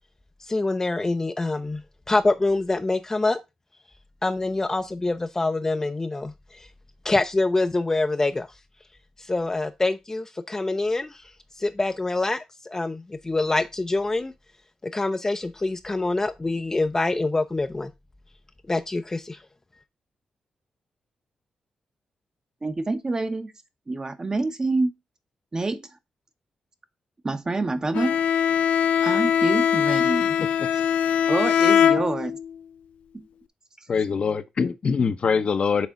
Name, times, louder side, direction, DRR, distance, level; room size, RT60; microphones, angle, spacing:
voice 1, 0.4-3.4 4.2-6.7 7.0-8.5 9.2-11.3 11.6-14.3 14.8-17.9 18.7-19.4, left 2 dB, 25° left, 0.5 m, -25 dB
voice 2, 22.6-23.5 23.9-24.9 25.5-25.9 27.2-28.2 29.0-30.4 30.7-30.8 31.3-32.4 33.1-33.3, right 3 dB, 30° right, 0.8 m, -27 dB
Bowed string instrument, 27.9-32.6, left 8 dB, 85° left, 0.4 m, -21 dB
voice 3, 33.9-35.9, left 5 dB, 55° left, 0.7 m, -23 dB
6.1 x 3.5 x 5.1 m
cardioid pair, 70°, 2 cm